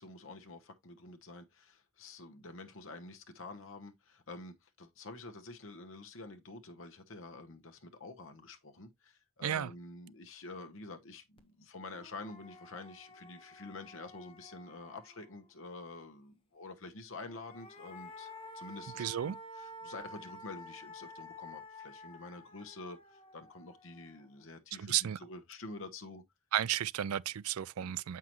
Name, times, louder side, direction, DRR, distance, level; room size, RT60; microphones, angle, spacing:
voice 1, 0.0-18.3 18.5-26.2 27.8-28.0, left 2 dB, 65° left, 1.1 m, -48 dB
sound 1, 11.4-11.5 11.8-15.5 17.1-24.4, left 1 dB, 25° left, 1.1 m, -51 dB
voice 2, 19.0-19.4 24.8-25.2 26.5-28.2, right 11 dB, 85° right, 0.4 m, -33 dB
7.5 x 5.8 x 3.0 m
head